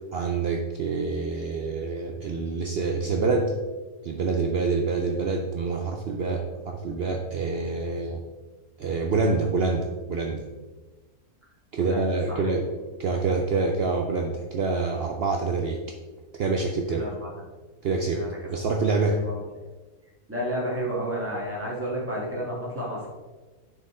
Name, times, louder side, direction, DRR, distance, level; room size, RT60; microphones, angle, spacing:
voice 1, 0.1-3.5 4.0-8.2 8.8-10.4 11.7-12.7 13.0-15.8 16.4-17.1 17.8-18.2 18.5-19.2, right 4 dB, 70° right, 3 dB, 0.5 m, -26 dB
voice 2, 16.9-17.3 18.1-18.3 19.1-19.4 20.3-23.1, equal, 10° right, -4 dB, 1.6 m, -31 dB
6.7 x 4.7 x 3.7 m, 1.3 s
omnidirectional pair, 1.6 m